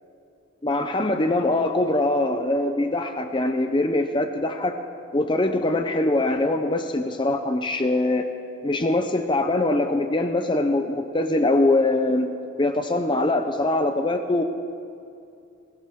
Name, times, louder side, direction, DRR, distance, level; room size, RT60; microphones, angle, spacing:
voice 1, 0.6-4.8 5.1-8.3 8.6-12.3 12.6-14.4, left 2 dB, 25° left, 7 dB, 0.6 m, -23 dB
21.5 x 17.0 x 3.7 m, 2.5 s
head